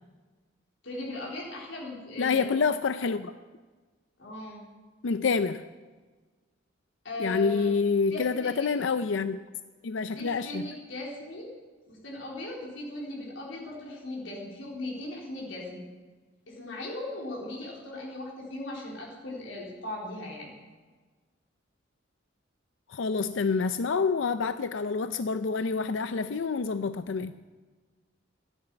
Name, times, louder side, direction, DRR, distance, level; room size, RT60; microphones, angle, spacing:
voice 1, 0.8-2.5 4.2-4.6 7.0-7.7 8.1-8.7 10.1-11.5 11.9-15.8 16.5-20.5, left 1 dB, 85° left, -3 dB, 4.0 m, -38 dB
voice 2, 2.2-3.3 5.0-5.6 7.2-9.4 9.8-10.6 22.9-27.4, left 5 dB, 70° left, 11 dB, 0.5 m, -27 dB
13.0 x 10.0 x 8.9 m, 1.4 s
head